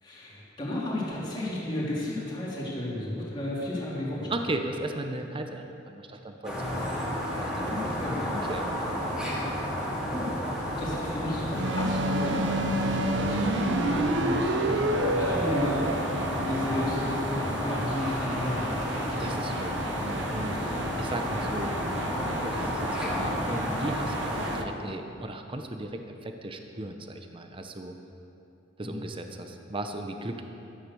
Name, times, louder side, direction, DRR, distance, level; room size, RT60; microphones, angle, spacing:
voice 1, 0.0-4.3 7.5-8.3 9.8-10.4 10.7-19.2 28.8-29.0, left 1 dB, 25° left, -7 dB, 3.5 m, -33 dB
voice 2, 4.3-8.0 8.3-8.7 19.2-21.7 22.3-27.9 28.8-30.4, right 1 dB, 25° right, 5 dB, 0.7 m, -36 dB
sound 1, 6.4-24.6, equal, 5° right, 3.0 m, -31 dB
sound 2, 11.5-24.6, right 2 dB, 65° right, 0.7 m, -32 dB
13.0 x 9.7 x 6.9 m, 2.7 s
head